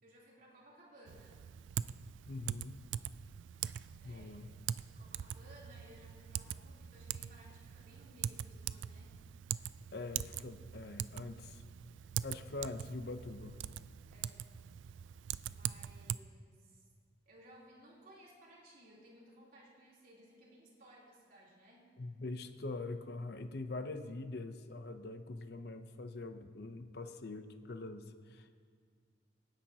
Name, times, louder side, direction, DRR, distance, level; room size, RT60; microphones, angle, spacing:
voice 1, 0.0-1.4 4.0-4.4 4.9-9.2 14.1-14.6 15.5-16.9 17.2-21.9, right 1 dB, 50° right, -5 dB, 3.3 m, -60 dB
Typing, 1.1-16.2, right 9 dB, 90° right, 0.3 m, -43 dB
voice 2, 2.3-2.8 4.0-4.5 9.9-11.6 12.2-13.6 22.0-28.5, left 2 dB, 60° left, 8 dB, 0.7 m, -43 dB
25.5 x 10.5 x 2.9 m, 2.1 s
head